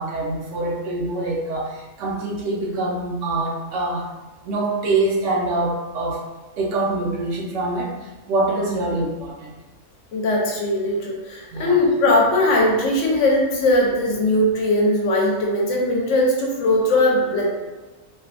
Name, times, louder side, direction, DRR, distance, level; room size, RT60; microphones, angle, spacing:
voice 1, 0.0-4.1 4.5-6.2 6.6-7.9 8.3-9.5 11.5-11.8, right 2 dB, 70° right, -2 dB, 0.9 m, -24 dB
voice 2, 10.1-17.5, left 1 dB, 75° left, -2 dB, 0.9 m, -19 dB
2.6 x 2.2 x 2.4 m, 1.2 s
omnidirectional pair, 1.4 m